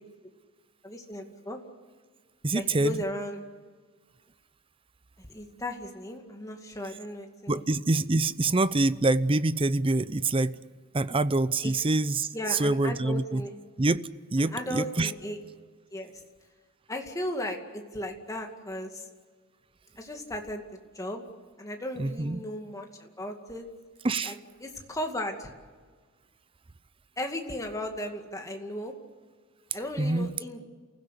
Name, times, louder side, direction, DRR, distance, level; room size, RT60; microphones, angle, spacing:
voice 1, 0.8-1.6 2.5-3.4 5.2-7.6 11.6-11.8 12.3-13.5 14.4-15.4 15.9-16.1 16.9-19.1 20.0-20.6 20.9-21.2 21.6-23.7 24.2-24.4 24.6-25.5 27.2-28.9 29.7-30.6, left 1 dB, 15° left, 2.3 m, -36 dB
voice 2, 2.4-3.0 7.5-10.6 10.9-13.4 13.8-14.0 14.3-15.1 22.0-22.4 24.0-24.3 30.0-30.3, right 2 dB, 25° right, 0.6 m, -25 dB
29.0 x 16.0 x 8.3 m
head